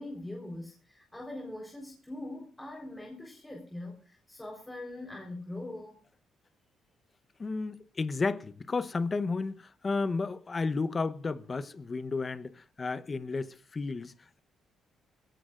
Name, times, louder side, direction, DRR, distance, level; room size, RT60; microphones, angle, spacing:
voice 1, 0.0-6.0, left 1 dB, 10° left, 4.2 m, -42 dB
voice 2, 7.4-14.4, left 4 dB, 30° left, 0.9 m, -32 dB
22.0 x 17.0 x 2.5 m
cardioid pair, 90°, 0 cm